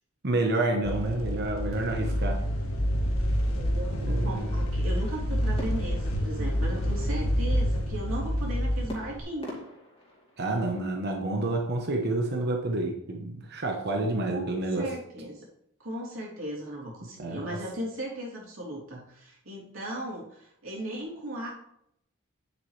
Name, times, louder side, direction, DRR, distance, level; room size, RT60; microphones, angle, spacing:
voice 1, 0.2-2.4 4.0-4.7 10.4-14.9 17.2-17.4, right 2 dB, 50° right, 1 dB, 1.1 m, -29 dB
sound 1, 0.8-9.2, equal, 90° left, 1.7 m, -28 dB
voice 2, 3.5-9.6 14.3-15.5 15.8-21.5, equal, 70° right, -4 dB, 3.1 m, -37 dB
sound 2, 5.6-7.1 8.9-11.0, left 1 dB, 25° left, 2.4 m, -44 dB
9.5 x 7.4 x 3.3 m, 0.75 s
head